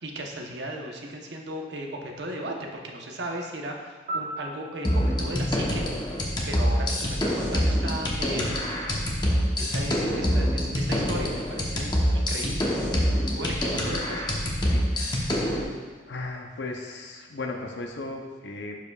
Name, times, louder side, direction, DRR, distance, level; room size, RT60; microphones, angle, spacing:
voice 1, 0.0-5.8 6.5-8.9 9.6-12.7 13.3-14.3, right 1 dB, 70° right, 1 dB, 0.9 m, -36 dB
Piano, 4.1-7.0 15.2-15.4, right 2 dB, 45° right, 1.3 m, -39 dB
sound 1, 4.8-15.6, equal, 25° left, 0.9 m, -25 dB
voice 2, 14.6-15.7 16.1-18.8, left 2 dB, 70° left, 2 dB, 0.7 m, -37 dB
11.5 x 4.9 x 2.4 m, 1.4 s
head